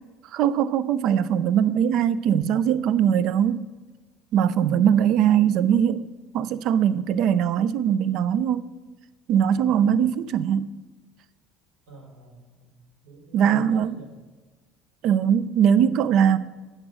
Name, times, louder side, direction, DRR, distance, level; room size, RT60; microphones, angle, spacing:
voice 1, 0.3-3.7 4.3-6.1 6.3-8.7 9.3-10.8 13.3-13.9 15.0-16.4, right 9 dB, 55° right, 16 dB, 0.4 m, -21 dB
voice 2, 9.6-10.1 11.9-12.8 13.0-14.1, right 1 dB, 80° right, 3 dB, 2.9 m, -47 dB
8.7 x 8.0 x 6.1 m, 1.2 s
cardioid pair, 150°, 0 cm